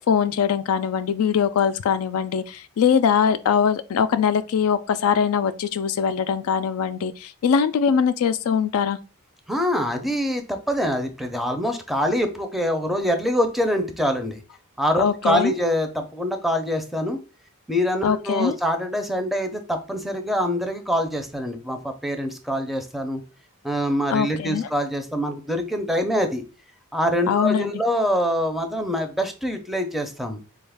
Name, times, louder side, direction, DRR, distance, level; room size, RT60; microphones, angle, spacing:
voice 1, 0.0-9.0 15.0-15.5 18.0-18.5 24.1-24.7 27.3-27.7, left 7 dB, 85° left, 0.3 m, -22 dB
voice 2, 9.5-14.4 14.8-17.2 17.7-23.2 23.6-26.4 26.9-30.4, equal, ahead, 0.4 m, -25 dB
4.0 x 2.3 x 3.4 m
head